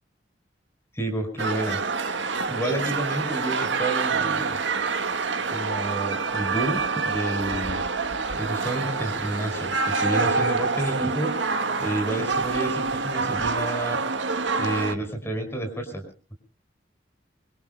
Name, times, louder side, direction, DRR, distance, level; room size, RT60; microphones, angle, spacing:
voice 1, 0.9-1.8 2.1-4.6 5.5-7.8 8.4-11.4 11.8-14.0 14.6-16.0, right 1 dB, 15° left, 4 dB, 5.6 m, -30 dB
sound 1, 1.4-15.0, right 4 dB, 85° right, 1.6 m, -27 dB
26.0 x 24.5 x 2.2 m, 0.38 s
head